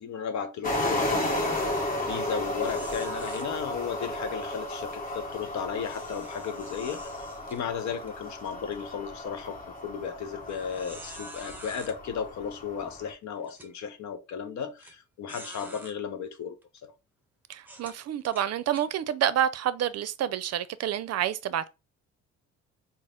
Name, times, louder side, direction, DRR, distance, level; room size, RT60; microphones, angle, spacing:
voice 1, 0.0-16.5 16.8-16.9, left 7 dB, 65° left, 0.9 m, -35 dB
sound 1, 0.6-13.1, left 1 dB, 30° left, 1.2 m, -34 dB
sound 2, 2.6-3.4 5.8-8.1 8.6-8.8 9.4-9.5 10.5-11.9 12.8-12.9 13.4-13.7 14.8-14.9 15.3-15.9 16.6-16.8 17.6-18.9, right 1 dB, 5° right, 0.9 m, -47 dB
voice 2, 17.5-21.7, right 10 dB, 55° right, 0.5 m, -28 dB
4.1 x 2.0 x 3.6 m
cardioid pair, 90°, 30 cm